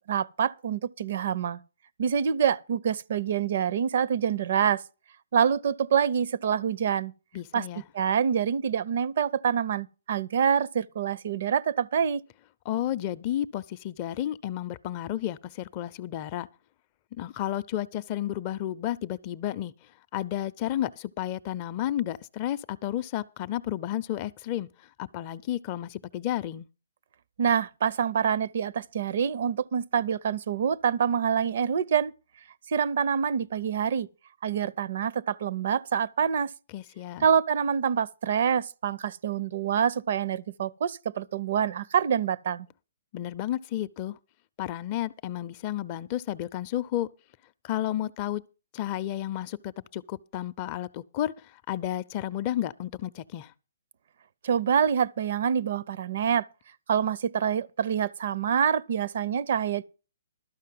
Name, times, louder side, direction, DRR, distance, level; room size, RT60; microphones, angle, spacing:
voice 1, 0.1-1.6 2.0-4.8 5.3-7.1 7.5-7.7 7.9-12.2 27.4-32.1 32.7-34.1 34.4-36.5 37.2-42.7 54.4-56.5 56.9-59.8, right 8 dB, 55° right, 0.5 m, -26 dB
voice 2, 7.3-7.8 12.7-16.5 17.1-19.7 20.1-24.7 25.0-26.7 36.7-37.3 43.1-44.2 44.6-47.1 47.6-48.4 48.7-53.5, left 12 dB, 30° left, 0.5 m, -32 dB
12.5 x 5.3 x 7.6 m
hypercardioid pair, 155°, 0 cm